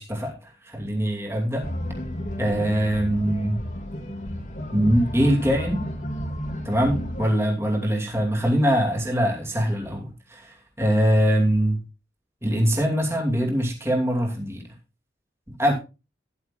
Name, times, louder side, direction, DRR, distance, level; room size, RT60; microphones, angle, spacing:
voice 1, 0.0-1.7 2.4-3.6 4.7-5.8 6.6-11.8 12.4-14.6 15.5-15.7, equal, 15° right, 0 dB, 2.5 m, -23 dB
sound 1, 1.6-7.3, equal, 40° left, 2.2 m, -32 dB
13.0 x 11.0 x 2.5 m, 0.28 s
head